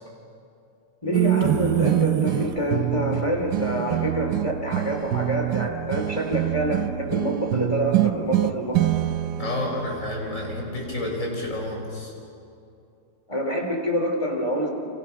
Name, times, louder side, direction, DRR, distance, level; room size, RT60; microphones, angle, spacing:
voice 1, 1.0-8.8 13.3-14.7, equal, 15° left, 2 dB, 3.2 m, -26 dB
sound 1, 1.1-11.7, right 13 dB, 65° right, 1.1 m, -26 dB
voice 2, 9.4-12.1, left 2 dB, 35° left, -1 dB, 5.5 m, -30 dB
29.0 x 27.5 x 5.9 m, 2.6 s
omnidirectional pair, 2.3 m